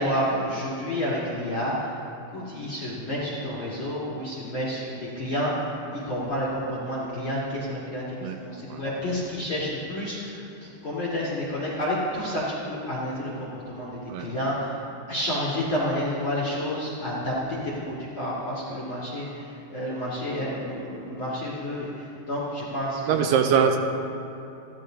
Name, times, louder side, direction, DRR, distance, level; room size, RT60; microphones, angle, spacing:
voice 1, 0.0-1.9 2.3-14.8 15.1-23.3, equal, 45° left, -8 dB, 1.9 m, -30 dB
voice 2, 23.0-23.8, right 7 dB, 85° right, 5 dB, 2.7 m, -22 dB
15.0 x 12.5 x 3.8 m, 2.9 s
omnidirectional pair, 4.9 m